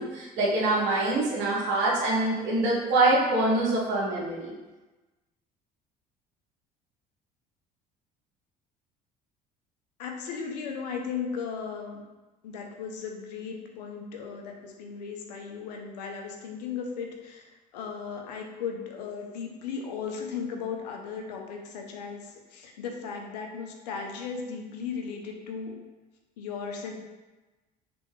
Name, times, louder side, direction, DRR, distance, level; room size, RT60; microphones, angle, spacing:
voice 1, 0.0-4.5, right 2 dB, 65° right, -4 dB, 1.3 m, -25 dB
voice 2, 10.0-12.0 12.4-17.5 17.7-25.7 26.4-26.9, left 6 dB, 80° left, 2 dB, 0.6 m, -36 dB
3.4 x 3.4 x 3.1 m, 1.1 s
hypercardioid pair, 65°, 21 cm